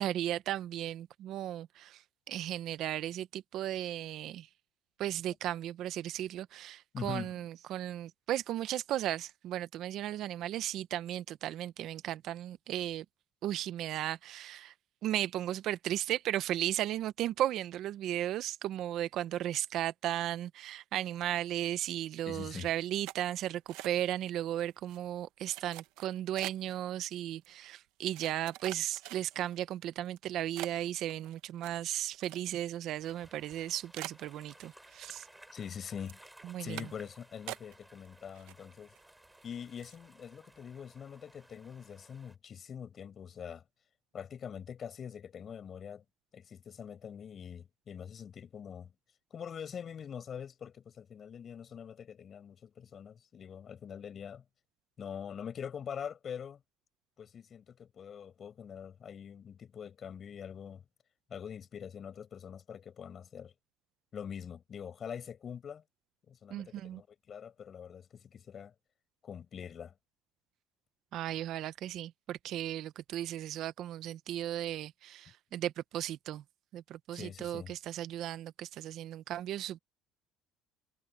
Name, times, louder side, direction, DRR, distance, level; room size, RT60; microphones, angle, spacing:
voice 1, 0.0-4.5 5.0-13.0 13.4-14.7 15.0-35.3 36.4-36.9 66.5-67.0 71.1-76.4 76.7-79.8, right 12 dB, 60° right, 0.9 m, -35 dB
voice 2, 6.9-7.3 22.2-22.7 35.5-36.2 36.6-38.9 39.4-43.6 44.1-46.0 46.3-48.9 49.3-54.4 55.0-56.6 57.2-60.8 61.3-63.5 64.1-65.8 66.3-68.7 69.2-69.9 77.1-77.8, left 8 dB, 35° left, 7.3 m, -44 dB
sound 1, 23.0-24.3 24.6-25.0 25.5-26.8 27.4-27.5 28.1-29.6 30.1-30.2 30.6-32.8 33.1-33.2 33.5-33.6 33.9-35.0 35.3-35.8 36.1-36.3 36.8-37.1 37.5-38.1 38.3-39.0 39.3-39.5 39.8-40.0, right 18 dB, 85° right, 1.3 m, -45 dB
sound 2, 33.0-42.3, right 1 dB, 5° right, 6.2 m, -59 dB
cardioid pair, 125°, 0 cm